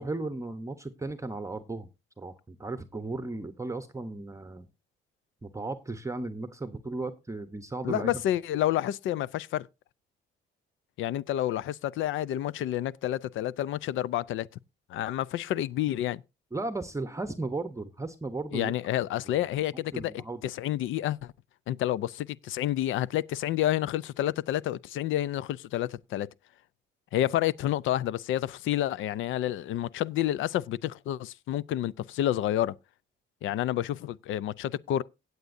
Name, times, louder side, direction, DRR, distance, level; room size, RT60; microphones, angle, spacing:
voice 1, 0.0-1.9 2.2-4.7 5.4-8.2 16.5-18.7 19.2-19.4 19.9-20.4, right 2 dB, 15° right, 0.8 m, -35 dB
voice 2, 7.8-9.7 11.0-14.5 14.9-16.2 18.5-21.3 21.7-26.3 27.1-32.7 33.4-35.0, left 13 dB, 80° left, 0.5 m, -29 dB
17.0 x 8.0 x 2.6 m
cardioid pair, 90°, 20 cm